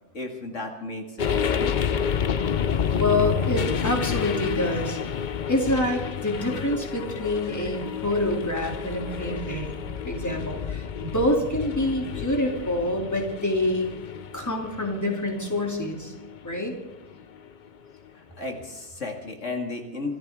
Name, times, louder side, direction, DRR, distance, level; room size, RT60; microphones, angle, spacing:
voice 1, 0.1-1.8 9.1-9.7 12.0-12.2 18.1-20.2, left 3 dB, 65° left, 3 dB, 2.3 m, -35 dB
sound 1, 1.2-17.5, left 7 dB, 50° left, 0.6 m, -30 dB
voice 2, 3.0-5.0 5.5-9.8 10.0-13.9 14.3-16.1 16.4-16.7, left 1 dB, 10° left, 1 dB, 2.8 m, -26 dB
26.0 x 14.0 x 3.6 m, 1.0 s
omnidirectional pair, 1.4 m